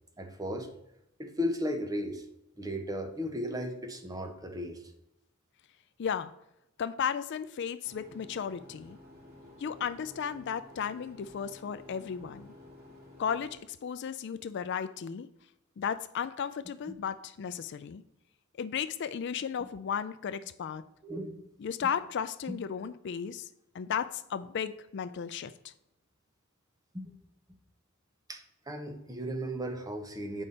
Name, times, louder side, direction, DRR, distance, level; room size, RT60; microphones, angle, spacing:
voice 1, 0.2-0.7 1.2-2.2 2.6-4.8 21.0-21.4 22.5-22.6 26.9-27.1 28.3-30.4, equal, 20° right, 6 dB, 0.9 m, -35 dB
voice 2, 6.0-6.3 6.8-9.0 9.6-12.5 13.2-15.3 15.8-18.0 18.6-20.8 21.6-23.5 23.7-25.7, left 7 dB, 55° left, 13 dB, 0.4 m, -34 dB
sound 1, 7.8-13.6, left 1 dB, 45° right, 2.8 m, -53 dB
8.1 x 5.4 x 4.2 m, 0.85 s
head